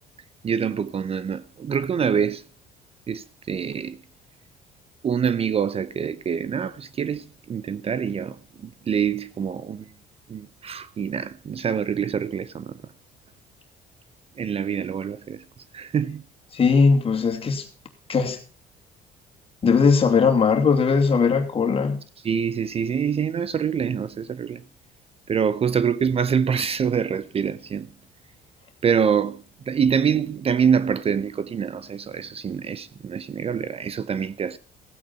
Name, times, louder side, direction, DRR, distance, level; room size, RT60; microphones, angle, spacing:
voice 1, 0.4-2.4 3.1-4.0 5.0-9.9 10.3-12.8 14.4-15.4 15.7-16.2 22.2-24.6 25.3-27.9 28.8-34.6, right 7 dB, 35° right, 0.7 m, -25 dB
voice 2, 16.5-17.7 18.1-18.4 19.6-22.0, left 5 dB, 35° left, 2.7 m, -19 dB
15.5 x 8.7 x 5.8 m
cardioid pair, 110°, 17 cm